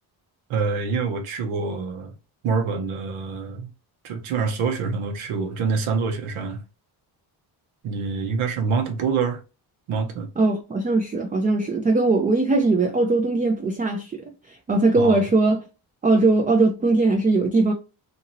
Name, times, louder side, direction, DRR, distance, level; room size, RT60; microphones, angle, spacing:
voice 1, 0.5-2.1 2.4-3.7 4.0-6.6 7.8-9.4 9.9-10.3 15.0-15.2, right 5 dB, 80° right, 0.9 m, -26 dB
voice 2, 10.4-15.6 16.0-17.7, right 3 dB, 20° right, 0.3 m, -20 dB
2.7 x 2.6 x 2.9 m
cardioid pair, 85°, 49 cm